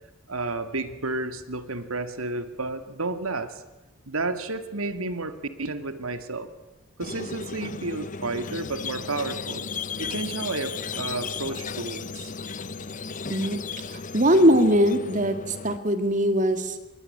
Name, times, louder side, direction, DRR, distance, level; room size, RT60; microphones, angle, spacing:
voice 1, 0.3-3.6 4.1-6.5 7.0-9.7 10.0-12.3, right 3 dB, 80° right, 10 dB, 2.2 m, -31 dB
Squeak, 7.0-15.8, left 5 dB, 35° left, 0.9 m, -35 dB
voice 2, 13.3-13.6 13.9-16.8, equal, 35° right, 8 dB, 2.1 m, -21 dB
26.0 x 22.5 x 9.9 m, 1.0 s
head